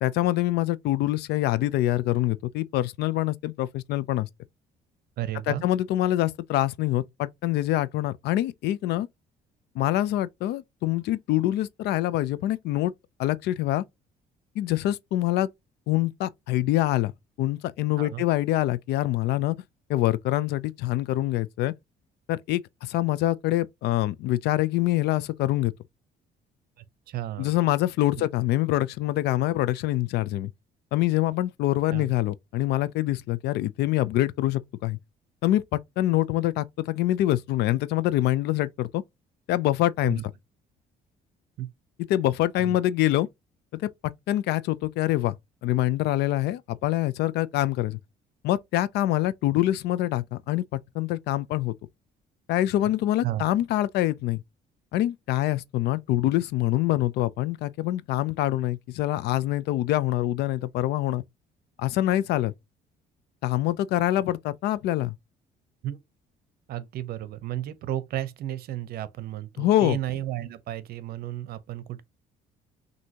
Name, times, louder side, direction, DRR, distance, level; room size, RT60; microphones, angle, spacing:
voice 1, 0.0-4.3 5.5-9.1 9.8-12.9 13.2-13.8 14.6-15.5 15.9-17.1 17.4-19.6 19.9-21.7 22.3-25.7 27.4-30.5 30.9-35.0 35.4-39.0 39.5-40.2 42.1-43.3 43.8-43.9 44.3-45.3 45.6-48.0 48.4-51.7 52.5-54.4 54.9-61.2 61.8-62.5 63.4-65.2 69.6-70.0, left 14 dB, 75° left, 0.5 m, -25 dB
voice 2, 5.2-5.6 18.0-18.2 27.1-27.5 28.2-28.3 31.9-32.1 40.0-40.2 41.6-41.7 42.6-42.8 53.2-53.4 65.8-66.0 66.7-72.0, right 13 dB, 65° right, 0.7 m, -33 dB
6.1 x 2.8 x 2.8 m
cardioid pair, 110°, 17 cm